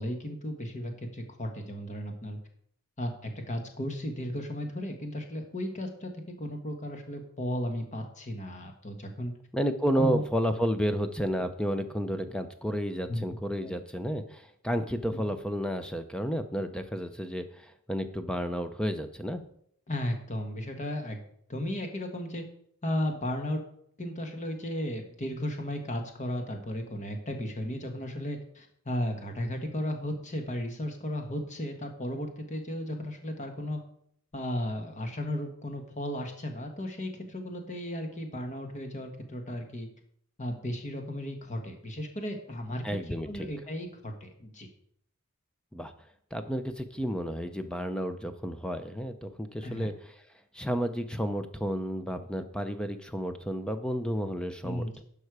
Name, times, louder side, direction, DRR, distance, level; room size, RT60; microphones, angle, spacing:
voice 1, 0.0-2.4 3.0-6.1 6.4-9.3 9.9-10.2 13.1-13.8 15.1-15.2 19.9-21.2 21.5-22.4 22.8-23.6 24.0-33.8 34.3-39.9 40.4-44.7 49.6-49.9 54.6-55.0, left 1 dB, 35° left, 4 dB, 1.4 m, -35 dB
voice 2, 9.5-19.4 42.8-43.5 45.7-45.9 46.3-49.9 50.5-55.0, equal, 5° left, 8 dB, 0.6 m, -31 dB
11.5 x 5.5 x 4.8 m, 0.67 s
head